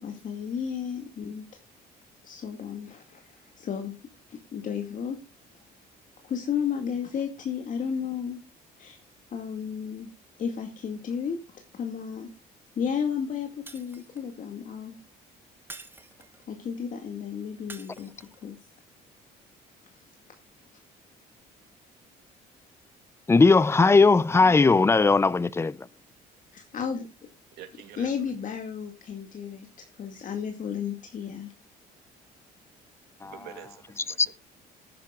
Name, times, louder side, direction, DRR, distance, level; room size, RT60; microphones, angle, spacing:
voice 1, 0.0-1.4 2.2-3.2 3.6-3.9 4.3-5.2 6.2-8.4 8.8-9.0 9.3-10.1 10.4-12.3 12.8-15.0 16.5-18.1 18.4-18.6 26.5-27.1 28.0-31.5, left 7 dB, 50° left, 2.2 m, -33 dB
Shatter, 13.7-14.4 15.7-16.5 17.7-18.5, right 2 dB, 10° right, 1.3 m, -47 dB
voice 2, 23.3-25.8 33.2-33.3 34.2-34.3, left 4 dB, 15° left, 0.5 m, -18 dB
voice 3, 27.5-28.3 33.2-34.3, right 10 dB, 75° right, 2.7 m, -47 dB
19.0 x 10.0 x 2.4 m
cardioid pair, 110°, 17 cm